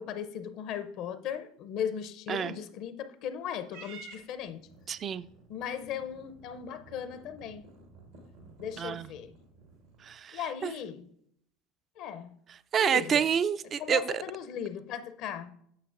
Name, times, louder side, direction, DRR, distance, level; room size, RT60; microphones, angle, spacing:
voice 1, 0.0-4.6 5.5-7.6 8.6-9.3 10.3-11.1 12.0-12.3 12.8-13.2 13.8-15.5, left 8 dB, 60° left, 0.6 m, -37 dB
voice 2, 2.3-2.6 4.9-5.3 8.8-9.1 10.0-10.7 12.7-14.2, right 7 dB, 40° right, 0.3 m, -28 dB
Purr / Meow, 3.7-10.2, right 3 dB, 80° right, 1.4 m, -53 dB
8.6 x 6.2 x 2.5 m
hypercardioid pair, 75°, 0 cm